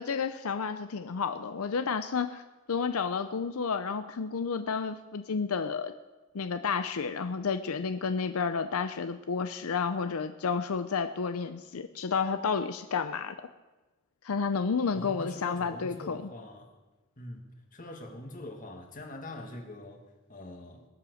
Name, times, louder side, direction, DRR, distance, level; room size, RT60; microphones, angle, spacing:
voice 1, 0.0-2.4 2.7-5.9 6.3-13.4 14.2-16.3, left 5 dB, 80° left, 9 dB, 0.6 m, -31 dB
voice 2, 14.9-16.7 17.2-20.9, left 1 dB, 40° left, 3 dB, 1.9 m, -43 dB
20.0 x 7.6 x 6.4 m, 1.2 s
head